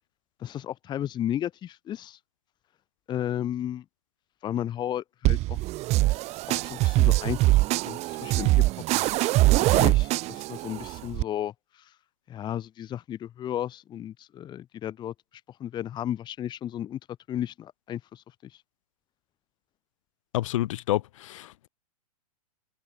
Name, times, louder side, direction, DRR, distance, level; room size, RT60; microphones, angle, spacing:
voice 1, 0.4-2.2 3.1-3.8 4.4-5.6 6.5-7.6 7.8-8.6 9.6-11.9 12.3-15.1 15.6-17.0 17.3-18.5, left 11 dB, 20° left, 1.3 m, -33 dB
sound 1, 5.2-11.2, right 18 dB, 35° right, 2.4 m, -23 dB
voice 2, 20.3-21.7, left 15 dB, 55° left, 1.9 m, -29 dB
figure-of-eight pair, 110°, 20 cm